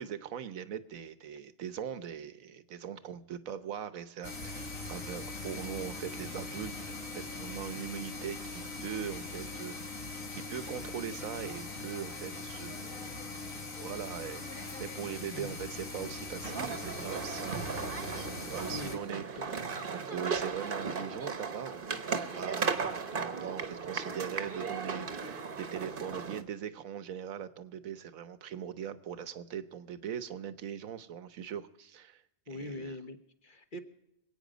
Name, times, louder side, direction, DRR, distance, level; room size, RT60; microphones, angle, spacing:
voice 1, 0.0-6.7 7.1-9.8 10.0-13.0 13.8-17.8 18.4-19.5 19.9-22.8 23.1-33.0, right 9 dB, 80° right, 13 dB, 1.3 m, -41 dB
sound 1, 4.2-19.0, left 3 dB, 75° left, 2.4 m, -41 dB
sound 2, 16.4-26.4, right 5 dB, 45° right, 1.1 m, -36 dB
voice 2, 18.7-19.0 19.3-19.4 32.5-33.8, left 1 dB, 40° left, 6 dB, 1.4 m, -42 dB
26.0 x 9.0 x 5.1 m, 0.82 s
omnidirectional pair, 1.4 m